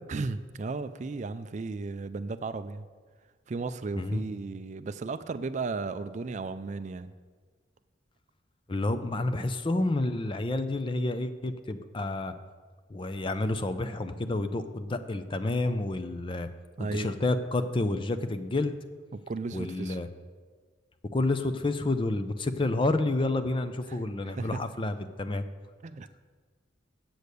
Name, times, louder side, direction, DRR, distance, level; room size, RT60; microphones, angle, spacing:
voice 1, 0.1-2.8 3.5-7.1 16.8-17.1 19.1-20.0 23.9-24.0 24.3-24.6 25.8-26.1, right 3 dB, 40° right, 12 dB, 0.4 m, -35 dB
voice 2, 8.7-12.3 12.9-16.5 16.8-18.8 19.5-20.1 21.1-25.4, left 2 dB, 25° left, 10 dB, 0.5 m, -29 dB
7.8 x 6.8 x 8.3 m, 1.5 s
head